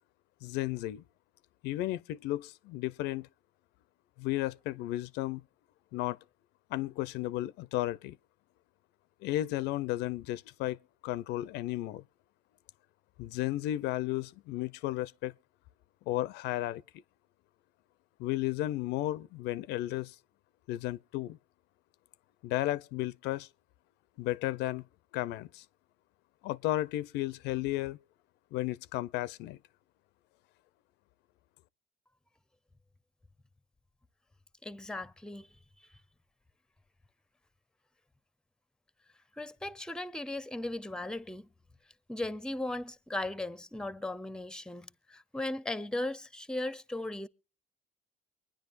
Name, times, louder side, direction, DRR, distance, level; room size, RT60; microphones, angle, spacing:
voice 1, 0.4-1.0 1.6-3.3 4.2-5.4 5.9-6.2 6.7-8.2 9.2-10.8 11.0-12.0 13.2-15.3 16.1-16.8 18.2-20.2 20.7-21.4 22.4-23.5 24.2-24.8 25.1-25.6 26.4-28.0 28.5-29.6, left 15 dB, 90° left, 0.5 m, -33 dB
voice 2, 34.6-35.5 39.4-41.5 42.1-47.3, left 2 dB, 5° left, 0.6 m, -37 dB
24.0 x 10.0 x 2.5 m
cardioid pair, 110°, 17 cm